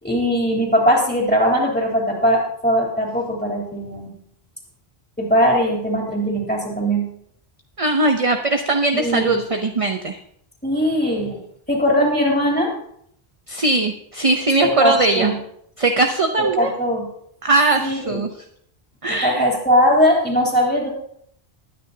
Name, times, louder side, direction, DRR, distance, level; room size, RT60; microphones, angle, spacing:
voice 1, 0.0-4.1 5.2-7.1 8.9-9.4 10.6-11.4 11.7-12.7 14.6-15.4 16.5-17.1 17.8-18.3 19.1-20.9, equal, 10° left, -2 dB, 3.3 m, -20 dB
voice 2, 7.8-10.2 13.5-15.3 15.8-16.7 17.4-18.3 19.0-19.4, right 2 dB, 35° right, 5 dB, 0.8 m, -20 dB
21.0 x 9.6 x 2.8 m, 0.70 s
omnidirectional pair, 1.1 m